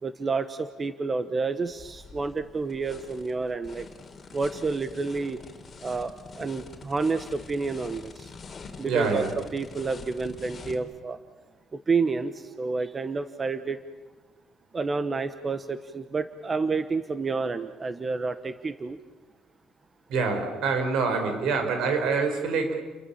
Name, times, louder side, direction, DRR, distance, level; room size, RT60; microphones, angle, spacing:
voice 1, 0.0-3.9 4.3-5.4 5.8-8.3 8.8-9.2 9.5-11.2 11.9-13.8 14.7-19.0, right 4 dB, 25° right, 11 dB, 1.1 m, -29 dB
sound 1, 1.7-10.8, left 4 dB, 30° left, 3.3 m, -45 dB
voice 2, 8.7-9.4 20.1-22.8, right 4 dB, 75° right, 6 dB, 5.2 m, -26 dB
30.0 x 22.5 x 7.2 m, 1.3 s
cardioid pair, 130°, 0 cm